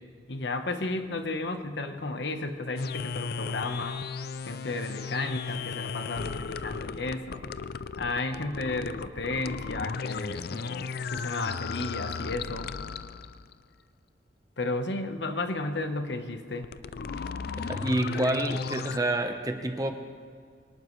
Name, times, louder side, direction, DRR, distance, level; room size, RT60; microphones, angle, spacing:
voice 1, 0.3-4.0 4.5-7.4 8.0-12.7 14.6-16.7, left 2 dB, 75° left, 7 dB, 1.2 m, -33 dB
sound 1, 2.8-13.5 16.5-19.0, left 5 dB, 60° left, 0.4 m, -35 dB
voice 2, 17.6-19.9, right 1 dB, 20° right, 6 dB, 1.1 m, -28 dB
23.5 x 18.5 x 3.2 m, 2.1 s
head